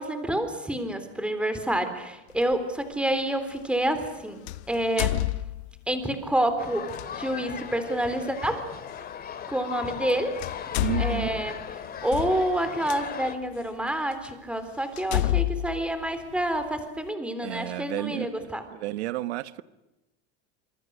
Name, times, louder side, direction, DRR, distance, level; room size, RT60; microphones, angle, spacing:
voice 1, 0.0-4.4 4.7-5.2 5.9-8.7 9.5-10.4 11.0-11.6 12.0-18.6, right 1 dB, 5° right, 3.7 m, -28 dB
sound 1, 2.4-2.5 4.5-5.9 6.9-7.1 8.9-9.0 10.0-10.1 10.4-13.0 13.7-13.8 14.2-14.3 15.0-16.7, left 16 dB, 85° left, 0.9 m, -29 dB
sound 2, 6.6-13.4, left 8 dB, 30° left, 2.3 m, -38 dB
voice 2, 10.8-11.4 17.4-19.6, right 16 dB, 90° right, 1.2 m, -32 dB
26.5 x 24.0 x 6.4 m
supercardioid pair, 125°, 32 cm